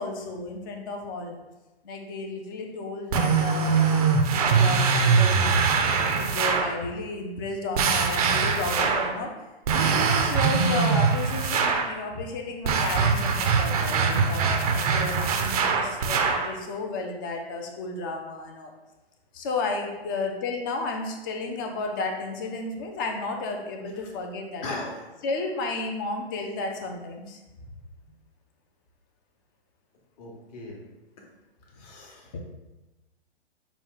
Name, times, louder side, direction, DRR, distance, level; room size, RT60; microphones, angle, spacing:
voice 1, 0.0-1.4 1.8-3.9 4.2-9.3 10.2-18.7 19.3-24.6 25.2-27.4 32.3-32.4, left 3 dB, 20° left, 3 dB, 0.4 m, -32 dB
sound 1, 3.1-6.8 7.7-9.2 9.7-11.9 12.6-16.5, right 5 dB, 35° right, 0.5 m, -23 dB
voice 2, 24.6-25.0 30.2-30.8 31.2-31.3 31.7-32.3, left 2 dB, 35° left, 0 dB, 1.0 m, -38 dB
5.8 x 2.2 x 3.8 m, 1.1 s
figure-of-eight pair, 125°, 32 cm